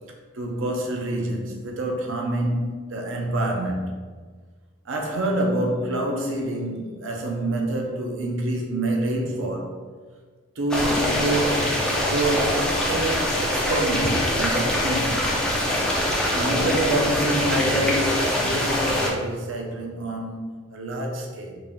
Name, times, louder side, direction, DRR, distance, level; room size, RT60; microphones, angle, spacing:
voice 1, 0.3-4.2 4.9-9.8 10.6-15.3 16.3-21.6, right 1 dB, 60° right, 1 dB, 0.6 m, -27 dB
sound 1, 10.7-19.1, left 1 dB, 5° left, 0.4 m, -24 dB
3.9 x 3.4 x 2.3 m, 1.5 s
head